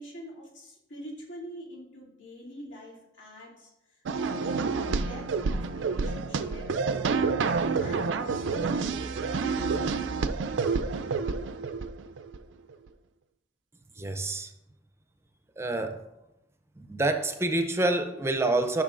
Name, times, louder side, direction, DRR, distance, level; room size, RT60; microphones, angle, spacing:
voice 1, 0.0-10.4, equal, 90° left, -4 dB, 2.6 m, -45 dB
sound 1, 4.0-12.4, right 4 dB, 85° right, 0.4 m, -29 dB
voice 2, 14.0-14.5 15.6-16.0 16.8-18.8, right 2 dB, 15° right, 7 dB, 0.5 m, -27 dB
12.0 x 6.2 x 2.5 m, 0.94 s
head